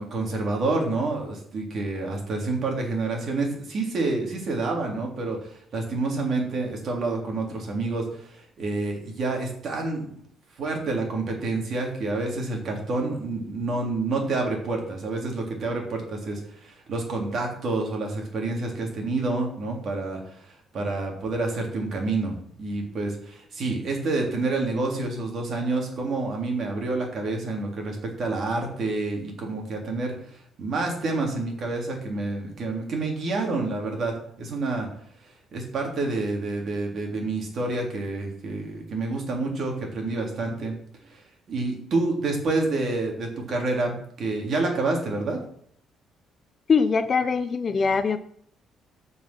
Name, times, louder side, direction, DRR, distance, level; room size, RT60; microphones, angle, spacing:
voice 1, 0.0-10.1 10.6-30.1 30.6-34.9 35.5-40.8 41.1-41.2 41.5-45.4, right 3 dB, 40° right, 1 dB, 3.4 m, -28 dB
voice 2, 46.7-48.2, left 5 dB, 30° left, 11 dB, 0.6 m, -22 dB
14.0 x 5.7 x 6.1 m, 0.64 s
cardioid pair, 170°, 0 cm